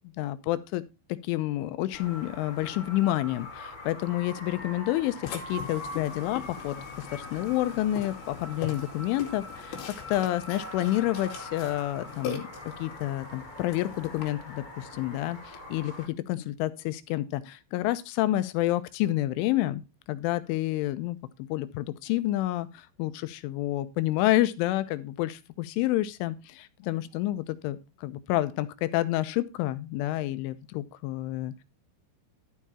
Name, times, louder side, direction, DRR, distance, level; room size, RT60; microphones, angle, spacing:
voice 1, 0.0-0.8 1.2-5.2 5.5-6.8 7.1-9.8 10.1-12.5 12.8-19.8 20.1-31.6, left 15 dB, 90° left, 3.3 m, -29 dB
sound 1, 1.9-16.1, left 1 dB, 40° left, 0.6 m, -43 dB
Burping eructation, 5.2-14.3, left 7 dB, 65° left, 4.4 m, -42 dB
12.0 x 7.1 x 4.2 m
omnidirectional pair, 5.5 m